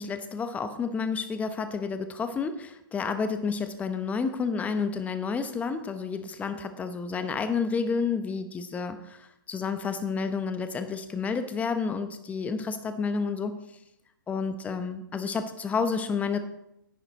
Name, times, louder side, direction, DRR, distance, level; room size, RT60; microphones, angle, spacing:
voice 1, 0.0-13.6 14.3-16.4, left 5 dB, 15° left, 10 dB, 0.8 m, -30 dB
10.5 x 8.5 x 4.1 m, 0.82 s
hypercardioid pair, 130°, 11 cm